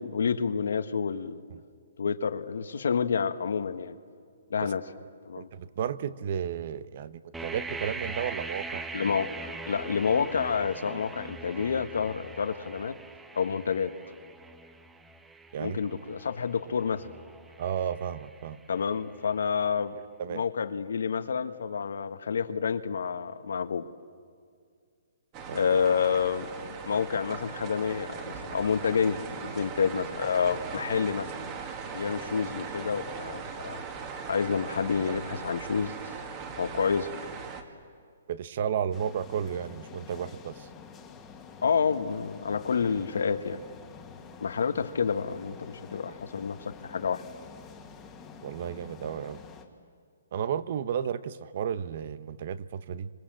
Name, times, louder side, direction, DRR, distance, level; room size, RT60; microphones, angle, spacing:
voice 1, 0.0-1.4 2.0-4.0 4.5-4.8 5.2-5.5 8.9-13.0 13.3-13.9 15.6-17.0 18.7-20.0 20.3-23.9 25.5-31.3 31.9-33.8 34.3-35.9 36.6-37.1 41.6-43.6 44.4-47.2, left 6 dB, 80° left, 10 dB, 1.5 m, -29 dB
voice 2, 5.3-8.8 15.5-15.8 17.6-18.6 20.2-20.4 25.5-25.6 38.3-40.7 48.4-49.4 50.3-53.1, right 8 dB, 45° right, 15 dB, 0.9 m, -33 dB
sound 1, 7.3-19.1, right 3 dB, 5° right, 0.9 m, -42 dB
sound 2, 25.3-37.6, right 5 dB, 25° right, 2.0 m, -39 dB
sound 3, 38.9-49.6, left 6 dB, 15° left, 1.8 m, -48 dB
29.0 x 26.0 x 7.7 m, 2.1 s
hypercardioid pair, 160°, 0 cm